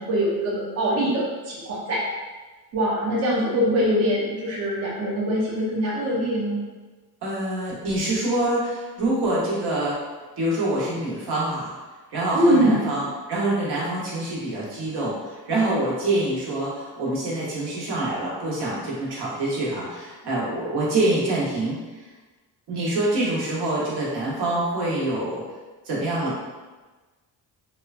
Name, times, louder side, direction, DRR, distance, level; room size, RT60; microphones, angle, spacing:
voice 1, 0.0-2.0 2.7-6.6 12.3-12.9, equal, 40° right, -5 dB, 0.5 m, -23 dB
voice 2, 7.2-10.0 10.4-11.7 12.1-21.8 22.7-25.4 25.8-26.4, right 1 dB, 85° right, -6 dB, 1.0 m, -25 dB
3.0 x 2.2 x 2.4 m, 1.3 s
cardioid pair, 170°, 38 cm